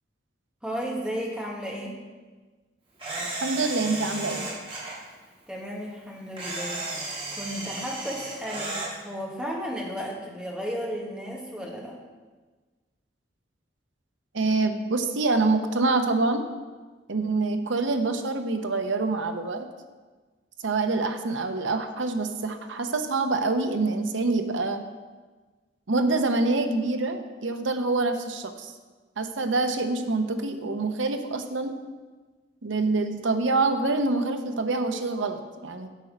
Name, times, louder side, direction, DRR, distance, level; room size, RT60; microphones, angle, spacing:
voice 1, 0.6-2.0 5.5-6.8 7.3-12.0, equal, 5° right, -2 dB, 1.4 m, -34 dB
Camera, 3.0-5.0 6.4-8.9, right 2 dB, 30° right, 2.2 m, -34 dB
voice 2, 3.4-4.5 14.3-16.5 17.1-19.7 20.6-24.8 25.9-28.7 29.2-31.7 32.6-35.9, right 3 dB, 85° right, 7 dB, 0.8 m, -26 dB
8.3 x 7.3 x 5.1 m, 1.3 s
head